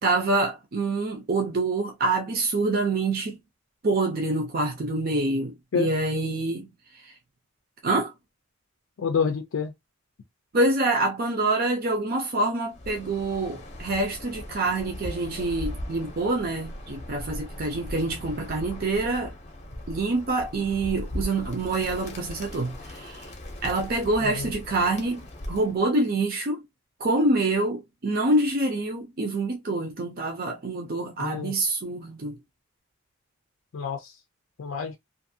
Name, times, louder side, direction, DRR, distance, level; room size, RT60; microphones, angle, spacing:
voice 1, 0.0-3.4 3.8-7.2 7.8-8.1 10.5-19.3 19.9-23.3 23.6-26.6 27.0-32.4, right 2 dB, 45° right, 0.5 m, -26 dB
voice 2, 9.0-9.7 24.2-24.5 31.2-31.5 33.7-34.2 34.6-35.0, left 5 dB, 80° left, 0.4 m, -28 dB
Bird, 12.7-25.8, left 1 dB, 35° left, 0.6 m, -39 dB
2.6 x 2.4 x 2.6 m
head